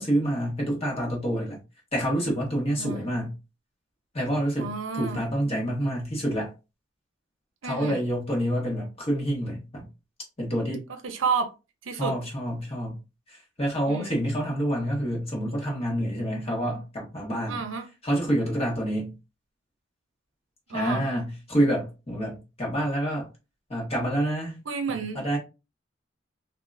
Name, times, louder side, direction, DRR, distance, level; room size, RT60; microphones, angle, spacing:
voice 1, 0.0-1.6 1.9-3.3 4.1-6.5 7.6-9.9 10.4-10.8 11.9-12.9 13.3-17.6 18.0-19.1 20.7-23.3 23.7-24.6 24.9-25.4, right 1 dB, 30° left, 1.4 m, -27 dB
voice 2, 2.8-3.1 4.6-5.2 7.6-8.0 11.0-11.5 11.8-12.2 13.9-14.1 17.5-17.9 20.7-21.0 24.7-25.2, right 5 dB, 80° right, 0.6 m, -30 dB
3.8 x 2.8 x 2.5 m
head